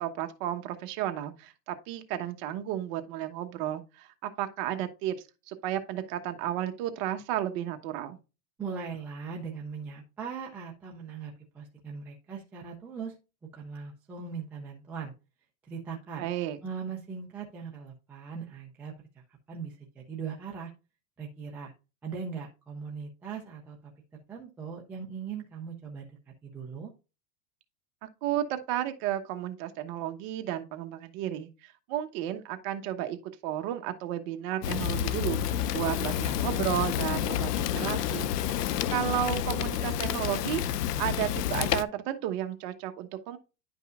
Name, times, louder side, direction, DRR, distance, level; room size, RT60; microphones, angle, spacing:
voice 1, 0.0-5.1 5.5-8.2 16.2-16.6 28.0-38.3 38.9-43.4, right 12 dB, 40° right, 1.1 m, -33 dB
voice 2, 8.6-13.1 13.5-15.1 15.6-16.3 16.6-18.9 19.5-20.7 21.2-21.7 22.0-23.8 24.3-26.2 26.4-26.9, right 6 dB, 5° right, 0.3 m, -39 dB
Fire, 34.6-41.8, left 10 dB, 90° left, 0.7 m, -29 dB
10.5 x 5.4 x 2.4 m
supercardioid pair, 145°, 46 cm